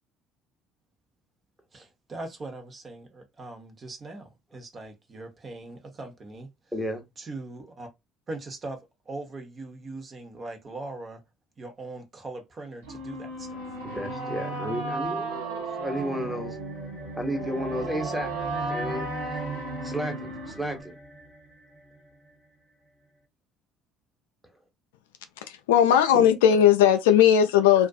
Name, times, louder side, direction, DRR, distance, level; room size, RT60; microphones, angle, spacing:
voice 1, 1.7-6.5 7.2-7.9 8.3-8.8 9.1-11.2 11.6-13.6, right 2 dB, 35° right, 0.9 m, -40 dB
voice 2, 6.7-7.0 13.8-16.6 17.2-19.4 19.8-20.9 26.1-26.2, equal, 5° right, 1.1 m, -33 dB
sound 1, 12.8-20.8, right 2 dB, 85° right, 0.7 m, -35 dB
sound 2, 15.7-22.3, right 2 dB, 15° left, 0.8 m, -40 dB
voice 3, 25.7-27.9, left 9 dB, 80° left, 0.3 m, -18 dB
2.5 x 2.4 x 2.3 m
hypercardioid pair, 60°, 0 cm